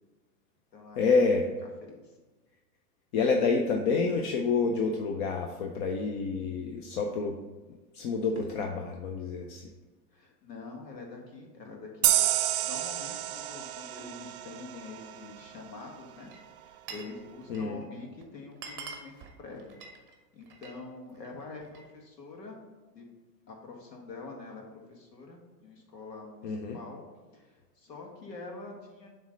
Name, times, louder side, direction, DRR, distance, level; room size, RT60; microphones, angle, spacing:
voice 1, 1.0-1.5 3.1-7.4 7.7-9.7 17.5-17.8 26.4-26.8, left 4 dB, 35° left, 3 dB, 0.5 m, -28 dB
voice 2, 1.8-2.2 10.1-12.1 12.6-16.3 16.6-19.8 20.3-22.6 22.9-23.1 23.5-24.6 24.9-27.0 27.3-29.1, left 3 dB, 90° left, 1 dB, 1.8 m, -45 dB
sound 1, 12.0-15.4, right 13 dB, 60° right, 0.6 m, -29 dB
Glass, 16.2-17.2 17.4-17.8 18.2-18.3 18.5-20.8 21.2-21.9, right 4 dB, 25° right, 0.7 m, -45 dB
7.0 x 3.3 x 5.0 m, 1.2 s
hypercardioid pair, 120°, 49 cm